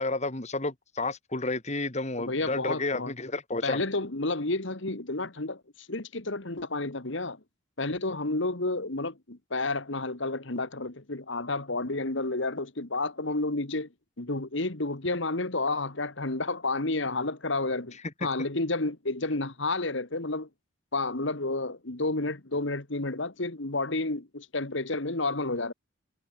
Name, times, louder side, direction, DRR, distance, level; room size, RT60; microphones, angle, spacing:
voice 1, 0.0-3.8 18.2-18.3, left 2 dB, 35° left, 2.3 m, -31 dB
voice 2, 2.2-3.1 3.6-7.4 7.8-13.9 14.2-20.5 20.9-25.7, left 2 dB, 60° left, 1.9 m, -30 dB
head